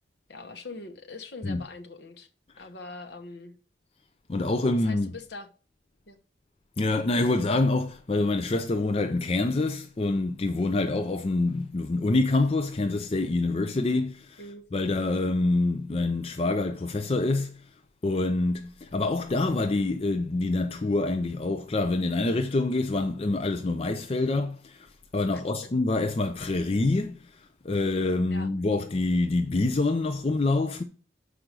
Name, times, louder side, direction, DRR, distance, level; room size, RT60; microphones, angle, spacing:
voice 1, 0.3-2.3 2.6-3.5 4.7-5.5 6.1-6.2 14.4-14.6 25.6-25.7 28.3-28.5, left 3 dB, 60° left, 1.0 m, -42 dB
voice 2, 4.3-5.1 6.8-14.4 14.7-17.5 18.0-30.8, left 2 dB, 30° left, 0.4 m, -26 dB
6.0 x 4.9 x 6.6 m
head